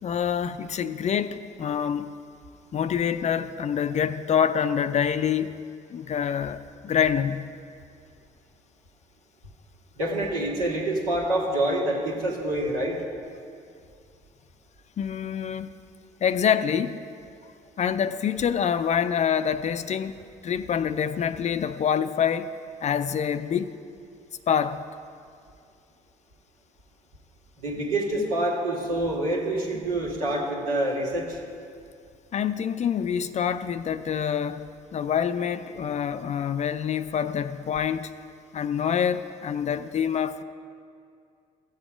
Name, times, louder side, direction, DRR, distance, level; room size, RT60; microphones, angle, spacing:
voice 1, 0.0-2.1 2.7-7.6 15.0-15.7 16.2-17.0 17.8-22.5 22.8-23.7 24.5-24.8 32.3-38.1 38.5-40.4, left 8 dB, 35° left, 0.5 m, -26 dB
voice 2, 10.0-13.0 27.6-31.4, right 1 dB, 80° right, 2.1 m, -26 dB
14.0 x 7.8 x 5.0 m
hypercardioid pair, 55°, 19 cm